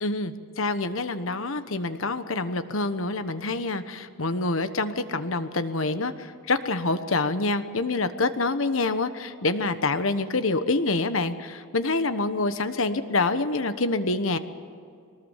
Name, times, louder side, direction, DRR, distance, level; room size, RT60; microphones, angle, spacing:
voice 1, 0.0-14.4, left 3 dB, 70° left, 11 dB, 1.2 m, -26 dB
23.0 x 19.5 x 7.5 m, 2.4 s
head